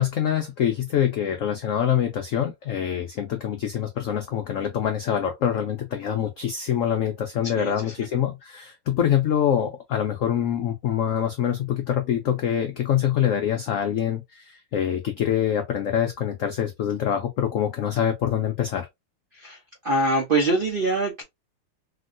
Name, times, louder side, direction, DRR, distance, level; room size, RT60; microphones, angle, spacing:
voice 1, 0.0-18.9, left 9 dB, 90° left, 0.7 m, -25 dB
voice 2, 7.5-8.1 19.3-21.2, right 2 dB, 75° right, 0.5 m, -24 dB
3.0 x 2.8 x 2.5 m
omnidirectional pair, 2.0 m